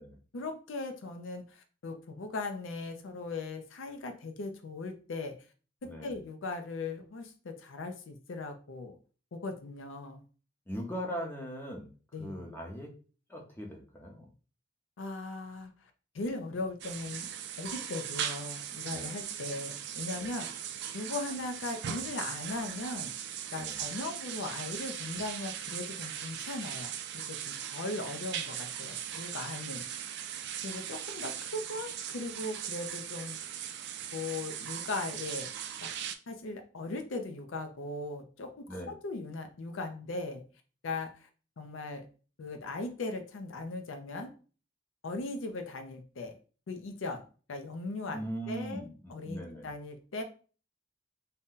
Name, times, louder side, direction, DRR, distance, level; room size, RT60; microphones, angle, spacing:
voice 1, 0.3-5.4 5.8-9.0 9.3-10.2 12.1-12.4 15.0-15.7 16.1-17.3 17.6-20.7 20.9-23.1 23.5-29.9 30.6-33.4 34.1-35.5 35.8-40.4 40.8-41.3 41.6-42.0 42.4-44.3 45.0-46.3 46.7-47.2 47.5-48.2 48.5-48.8 49.1-50.2, left 2 dB, 90° left, 6 dB, 0.5 m, -38 dB
voice 2, 10.7-11.9 12.2-12.9 13.3-14.3 18.9-19.2 20.2-20.3 23.6-23.8 38.7-38.9 48.1-49.7, equal, 10° left, 1 dB, 0.7 m, -40 dB
sound 1, 16.8-36.2, right 9 dB, 60° right, 0.3 m, -39 dB
2.6 x 2.2 x 3.6 m, 0.38 s
head